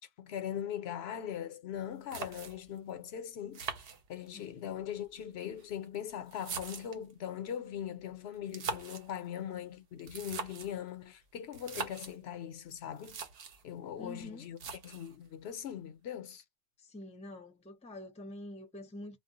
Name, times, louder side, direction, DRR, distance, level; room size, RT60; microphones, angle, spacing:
voice 1, 0.2-3.7 4.1-13.2 13.6-14.6 14.8-16.4, left 9 dB, 75° left, 0.9 m, -40 dB
sound 1, 1.7-1.8 2.1-2.8 3.5-4.5 5.4-7.1 8.4-9.1 10.0-10.8 11.5-12.2 12.7-12.8 13.0-13.6 14.6-15.2, right 5 dB, 65° right, 0.9 m, -42 dB
voice 2, 14.0-14.5 16.8-19.2, left 1 dB, 10° left, 0.5 m, -46 dB
2.3 x 2.0 x 3.7 m
omnidirectional pair, 1.1 m